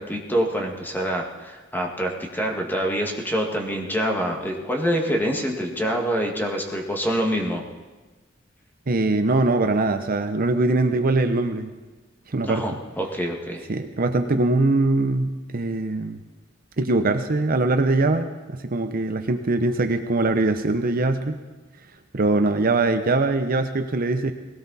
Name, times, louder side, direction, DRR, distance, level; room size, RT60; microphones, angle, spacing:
voice 1, 0.0-7.6 12.4-13.7, equal, 10° left, 0 dB, 1.9 m, -26 dB
voice 2, 8.9-11.7 12.3-12.7 13.7-16.2 16.8-21.4 22.1-24.3, right 2 dB, 45° right, 8 dB, 0.8 m, -22 dB
19.5 x 17.5 x 4.1 m, 1.2 s
head